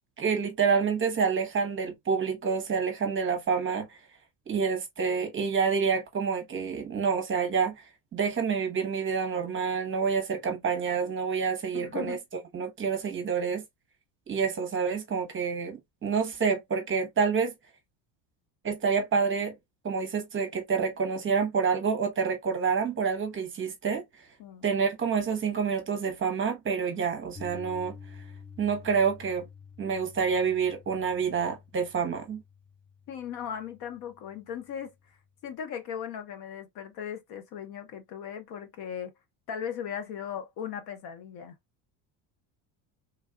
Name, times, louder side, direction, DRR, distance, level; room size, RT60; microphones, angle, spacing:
voice 1, 0.2-4.0 4.5-7.7 8.1-12.2 12.5-13.6 14.3-17.5 18.6-19.5 19.8-24.0 24.6-27.9 28.6-29.4 29.8-32.4, right 6 dB, 25° right, 0.9 m, -28 dB
voice 2, 11.7-12.2 24.4-24.7 33.1-34.9 35.4-39.1 39.5-41.5, left 8 dB, 55° left, 0.8 m, -38 dB
Piano, 27.4-35.5, left 5 dB, 5° left, 0.4 m, -50 dB
3.4 x 2.3 x 2.3 m
cardioid pair, 130°, 45 cm